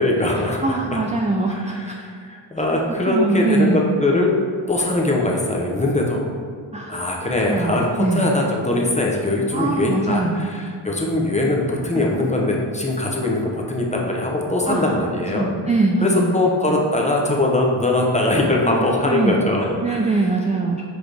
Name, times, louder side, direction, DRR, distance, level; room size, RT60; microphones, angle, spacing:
voice 1, 0.0-1.0 1.5-4.3 4.7-6.3 6.9-15.5 16.0-20.3, left 2 dB, 15° left, -1 dB, 0.9 m, -21 dB
voice 2, 0.6-2.0 3.1-3.8 6.7-7.1 7.5-8.3 9.5-10.4 12.0-12.1 14.7-14.9 15.3-16.3 18.6-19.4 19.8-20.8, right 3 dB, 15° right, 1 dB, 0.3 m, -22 dB
6.2 x 4.9 x 3.4 m, 2.1 s
wide cardioid pair, 95°, 48 cm